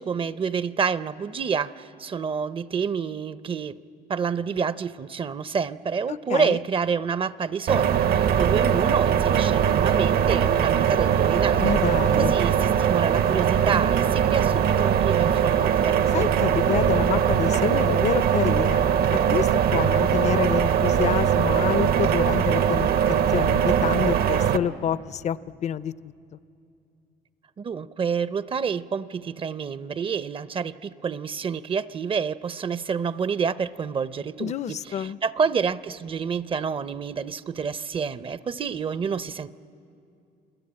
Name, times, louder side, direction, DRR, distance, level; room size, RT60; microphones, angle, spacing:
voice 1, 0.0-3.8 4.1-11.7 12.2-16.0 27.6-39.5, right 6 dB, 30° right, 15 dB, 0.6 m, -28 dB
sound 1, 7.7-24.6, right 8 dB, 65° right, 0.9 m, -21 dB
voice 2, 11.6-12.3 16.1-18.8 19.3-22.9 23.3-26.1 34.4-35.2, left 9 dB, 40° left, 18 dB, 0.5 m, -28 dB
29.0 x 21.0 x 8.7 m, 2.6 s
cardioid pair, 110°, 17 cm